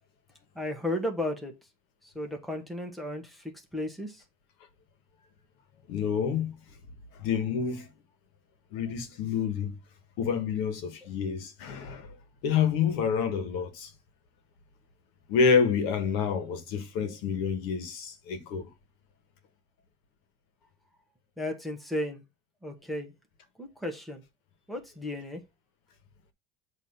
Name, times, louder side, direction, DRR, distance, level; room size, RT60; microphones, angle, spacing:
voice 1, 0.5-1.5 2.0-4.2 21.4-22.2 22.6-23.1 23.6-24.2 24.7-25.4, left 1 dB, ahead, 1.2 m, -34 dB
voice 2, 5.9-6.5 7.2-7.9 8.7-9.7 10.2-12.1 12.4-13.9 15.3-18.7, left 6 dB, 75° left, 1.5 m, -28 dB
8.1 x 3.1 x 5.4 m
cardioid pair, 160°, 21 cm